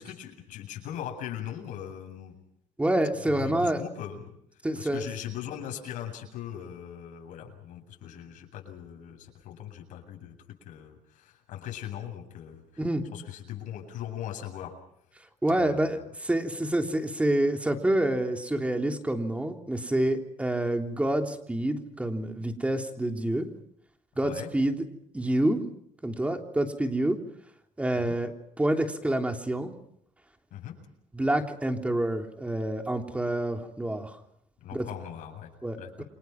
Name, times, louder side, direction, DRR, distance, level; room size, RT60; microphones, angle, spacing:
voice 1, 0.0-2.3 3.3-4.4 4.7-14.8 15.6-16.1 24.2-24.5 27.9-28.2 30.5-30.8 34.6-35.5 35.8-36.0, left 10 dB, 75° left, 3 dB, 8.0 m, -40 dB
voice 2, 2.8-3.8 4.6-5.1 12.8-13.0 15.4-23.5 24.1-24.8 25.1-25.6 26.0-27.2 27.8-28.3 28.6-29.7 31.1-34.2 34.7-34.8 35.6-36.0, right 1 dB, 10° right, 3 dB, 3.4 m, -27 dB
29.5 x 26.0 x 6.0 m, 0.73 s
cardioid pair, 115°, 13 cm